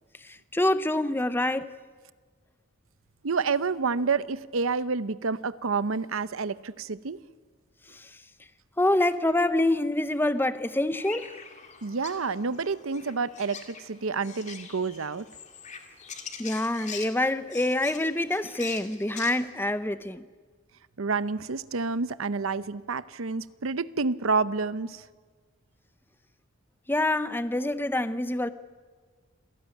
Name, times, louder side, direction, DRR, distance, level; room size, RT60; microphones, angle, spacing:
voice 1, 0.2-1.7 7.9-8.1 8.8-11.3 16.4-20.2 26.9-28.5, left 1 dB, 10° left, 0.8 m, -26 dB
voice 2, 3.2-7.2 11.8-15.3 21.0-25.1, right 4 dB, 75° right, 0.7 m, -29 dB
sound 1, 10.9-19.3, left 6 dB, 35° left, 2.1 m, -43 dB
27.5 x 17.0 x 9.1 m
head